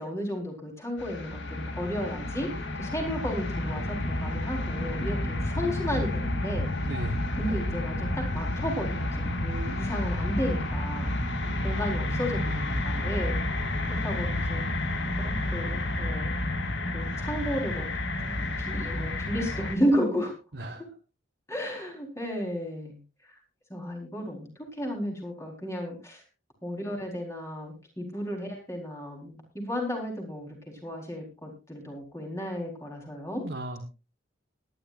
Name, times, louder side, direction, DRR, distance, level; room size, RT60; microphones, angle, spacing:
voice 1, 0.0-2.5 2.8-6.7 7.4-11.1 11.6-13.4 14.0-14.7 15.2-16.3 16.9-17.9 18.2-20.3 21.5-23.0 23.7-26.2 26.6-30.6 30.8-33.4, equal, 15° left, 0 dB, 4.4 m, -33 dB
sound 1, 1.0-19.8, left 1 dB, 65° left, 2.3 m, -30 dB
voice 2, 6.9-7.2 11.4-12.8 20.5-20.8 33.4-33.8, right 1 dB, 60° right, 2 dB, 1.5 m, -37 dB
20.5 x 11.5 x 2.6 m, 0.31 s
head